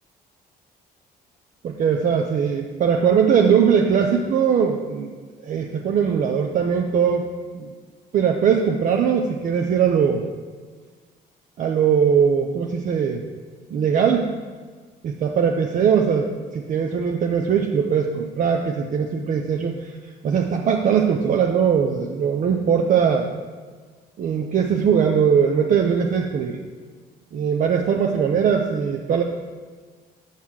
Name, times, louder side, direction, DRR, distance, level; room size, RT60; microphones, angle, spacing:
voice 1, 1.6-5.1 5.4-7.3 7.5-7.7 8.1-10.3 11.6-13.2 13.7-14.3 15.0-19.9 20.2-23.3 24.2-26.6 27.3-29.2, right 7 dB, 50° right, 2 dB, 0.7 m, -20 dB
7.4 x 5.6 x 6.3 m, 1.5 s
cardioid pair, 110°, 17 cm